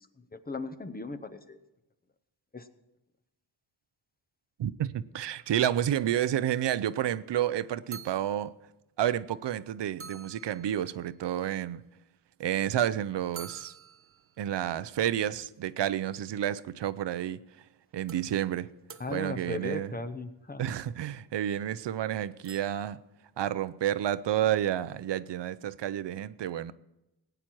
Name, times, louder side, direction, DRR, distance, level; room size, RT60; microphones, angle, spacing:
voice 1, 0.0-1.6 2.5-2.7 19.0-20.6, left 3 dB, 20° left, 0.7 m, -37 dB
voice 2, 4.6-8.5 9.0-11.8 12.4-13.7 14.4-17.4 17.9-18.7 19.1-19.9 20.6-23.0 23.4-26.7, right 11 dB, 85° right, 0.6 m, -30 dB
sound 1, 7.9-8.6 9.3-9.4 9.6-9.7 10.0-11.1 13.3-14.5 16.9-17.0 18.1-19.7 22.4-22.6, right 6 dB, 35° right, 0.5 m, -48 dB
19.0 x 9.0 x 4.6 m
wide cardioid pair, 165°, 41 cm